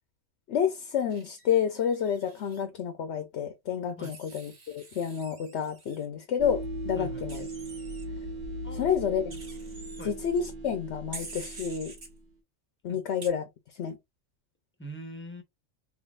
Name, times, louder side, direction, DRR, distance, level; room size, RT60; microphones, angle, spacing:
voice 1, 0.5-7.4 8.8-9.4 10.0-11.9 12.8-13.4 13.8-14.0, left 8 dB, 65° left, 0.9 m, -29 dB
Wild animals, 1.1-2.6 4.0-6.1 7.3-8.0 9.3-10.0 11.1-12.1 13.2-13.3, right 3 dB, 40° right, 1.1 m, -46 dB
sound 1, 6.4-12.2, right 1 dB, 75° right, 1.4 m, -38 dB
voice 2, 6.9-7.3 8.6-9.3 10.0-10.1 12.9-13.0 14.8-15.4, right 1 dB, 10° left, 0.8 m, -43 dB
3.6 x 3.0 x 2.4 m
omnidirectional pair, 1.3 m